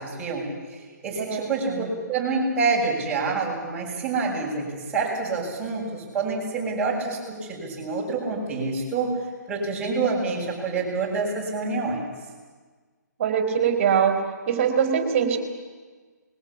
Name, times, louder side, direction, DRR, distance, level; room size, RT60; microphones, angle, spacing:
voice 1, 0.0-9.2 9.5-12.0, right 4 dB, 10° right, -5 dB, 7.1 m, -27 dB
voice 2, 1.2-1.9 13.2-14.2 14.5-15.4, right 7 dB, 40° right, 6 dB, 3.9 m, -23 dB
25.5 x 21.5 x 7.3 m, 1.4 s
figure-of-eight pair, 135°, 10 cm